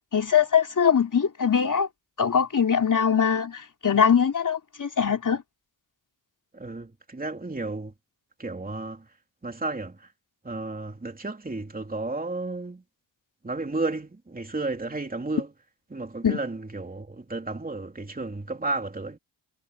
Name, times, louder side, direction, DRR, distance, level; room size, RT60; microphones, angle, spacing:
voice 1, 0.1-1.9 2.2-5.4 16.2-16.4, left 7 dB, 40° left, 3.4 m, -22 dB
voice 2, 6.5-7.9 8.4-9.1 9.4-10.1 10.4-12.8 13.4-15.5 15.9-19.2, right 2 dB, 20° right, 3.2 m, -33 dB
wide cardioid pair, 120°, 45 cm